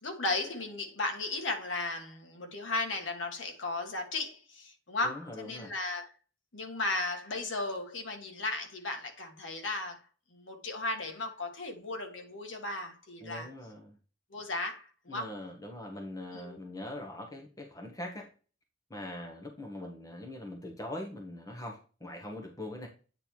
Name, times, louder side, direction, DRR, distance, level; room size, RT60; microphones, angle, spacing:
voice 1, 0.0-6.1 6.5-10.0 10.3-13.5 14.3-15.3 16.3-16.6, left 2 dB, 75° left, 1.5 m, -35 dB
voice 2, 5.0-5.7 13.2-14.0 15.1-18.3 18.9-22.9, left 1 dB, 15° left, 1.2 m, -42 dB
8.7 x 3.4 x 4.5 m
head